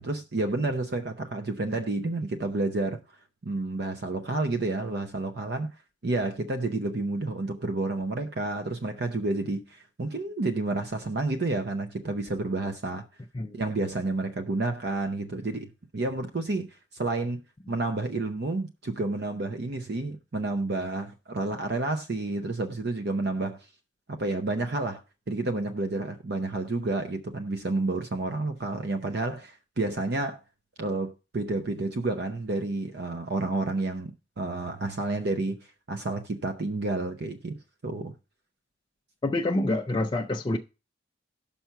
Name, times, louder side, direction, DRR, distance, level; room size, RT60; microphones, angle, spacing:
voice 1, 0.0-3.0 3.4-5.7 6.0-13.1 13.5-17.4 17.7-23.6 24.1-25.0 25.3-30.4 30.8-38.1, right 2 dB, 50° right, 0.6 m, -30 dB
voice 2, 39.2-40.6, left 2 dB, 20° left, 0.4 m, -27 dB
5.9 x 5.6 x 5.6 m
head